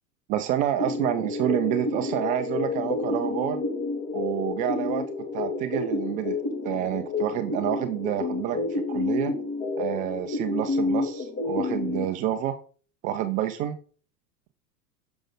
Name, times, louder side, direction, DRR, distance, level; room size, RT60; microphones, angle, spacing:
voice 1, 0.3-3.6 4.1-5.1 5.3-6.4 6.6-9.3 9.8-12.6 13.0-13.8, right 12 dB, 20° right, 9 dB, 0.3 m, -28 dB
sound 1, 0.8-12.1, left 3 dB, 25° left, 2.2 m, -29 dB
9.8 x 6.9 x 3.6 m, 0.39 s
figure-of-eight pair, 90°, 48 cm